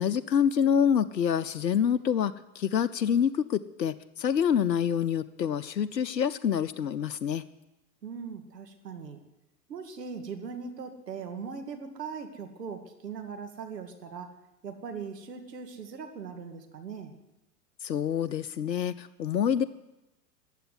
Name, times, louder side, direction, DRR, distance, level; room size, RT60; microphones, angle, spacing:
voice 1, 0.0-7.4 17.8-19.6, left 8 dB, 80° left, 12 dB, 0.7 m, -27 dB
voice 2, 8.0-9.2 9.7-14.3 14.6-17.1, right 5 dB, 70° right, 5 dB, 2.3 m, -40 dB
14.5 x 9.2 x 9.6 m, 0.98 s
figure-of-eight pair, 95°, 50 cm